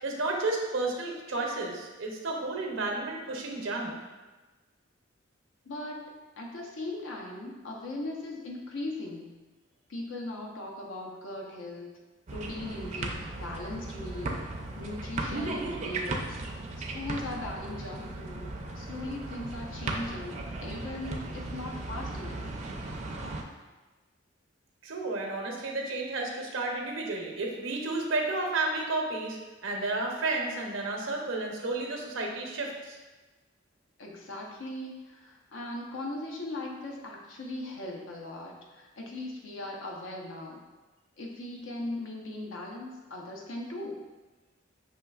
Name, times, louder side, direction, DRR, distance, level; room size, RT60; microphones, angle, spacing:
voice 1, 0.0-3.9 24.8-33.0, right 2 dB, 90° right, 1 dB, 0.7 m, -32 dB
voice 2, 5.6-6.1 6.4-9.3 9.9-11.9 12.3-14.4 14.8-16.4 16.9-22.5 34.0-40.6 41.2-44.0, left 2 dB, 90° left, -1 dB, 0.8 m, -39 dB
sound 1, 12.3-23.4, right 2 dB, 35° right, 0.4 m, -36 dB
5.5 x 3.2 x 2.3 m, 1.2 s
head